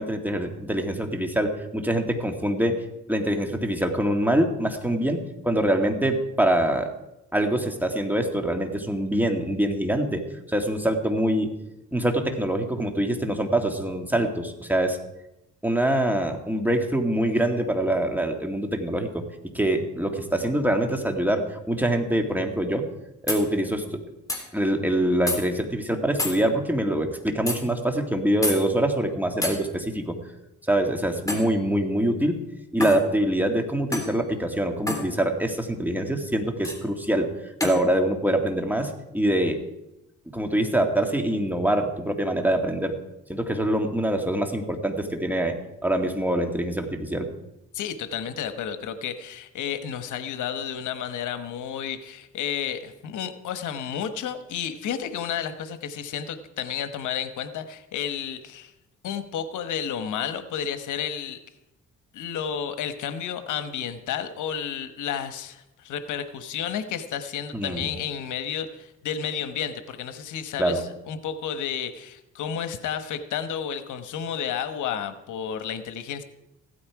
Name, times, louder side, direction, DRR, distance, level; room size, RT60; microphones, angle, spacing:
voice 1, 0.0-2.8 3.1-6.9 7.3-11.5 11.9-15.0 15.6-19.2 19.5-22.9 23.2-24.0 24.5-30.2 30.7-32.4 32.7-37.3 37.6-39.6 40.3-43.0 43.3-47.3 67.5-67.9 70.6-70.8, right 1 dB, 5° right, 4 dB, 2.0 m, -24 dB
sound 1, 23.3-23.4 24.3-24.4 25.3-25.4 26.2-26.4 27.5-27.6 28.4-28.6 29.4-29.6 31.3-31.5 32.8-33.0 33.9-34.1 34.9-35.1 36.6-36.8 37.6-37.8, left 1 dB, 10° left, 3.5 m, -28 dB
voice 2, 47.7-58.7 59.0-61.4 62.1-76.2, left 8 dB, 80° left, 10 dB, 1.2 m, -31 dB
15.5 x 13.0 x 4.8 m, 0.88 s
cardioid pair, 90°, 30 cm